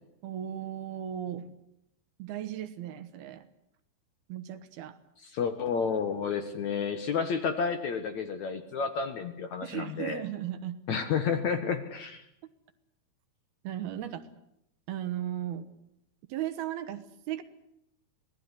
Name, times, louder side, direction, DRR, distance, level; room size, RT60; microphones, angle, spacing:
voice 1, 0.2-1.5 2.2-3.5 4.3-5.0 9.6-10.8 13.6-14.3 14.9-15.7 16.3-17.4, right 11 dB, 70° right, 11 dB, 3.1 m, -36 dB
voice 2, 5.3-10.2 10.9-12.2, left 6 dB, 60° left, 8 dB, 2.2 m, -30 dB
25.5 x 18.5 x 9.8 m, 0.79 s
omnidirectional pair, 4.7 m